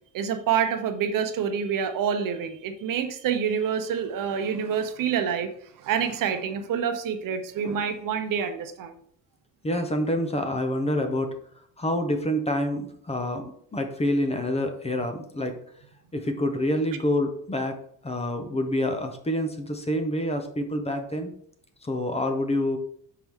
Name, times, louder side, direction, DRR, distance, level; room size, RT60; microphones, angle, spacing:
voice 1, 0.1-5.5 5.8-9.0, right 7 dB, 60° right, 8 dB, 0.8 m, -27 dB
voice 2, 9.6-11.3 11.8-15.6 16.1-17.8 18.0-21.3 21.8-22.8, left 1 dB, 15° left, 6 dB, 0.7 m, -27 dB
5.8 x 4.6 x 3.5 m, 0.63 s
cardioid pair, 130°, 37 cm